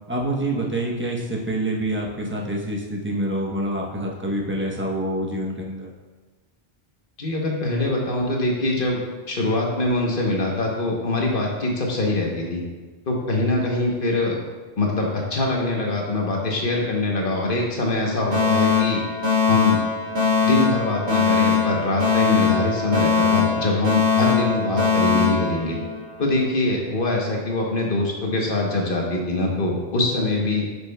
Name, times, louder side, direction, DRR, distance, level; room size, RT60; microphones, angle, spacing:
voice 1, 0.1-5.9, right 1 dB, 15° right, -1 dB, 0.7 m, -26 dB
voice 2, 7.2-9.0 9.3-12.6 13.1-14.4 14.8-19.0 19.5-19.8 20.4-25.8 26.2-30.7, left 2 dB, 60° left, -1 dB, 1.1 m, -23 dB
Alarm, 18.3-26.3, left 6 dB, 75° right, 2.2 m, -21 dB
8.1 x 6.3 x 2.2 m, 1.4 s
omnidirectional pair, 1.0 m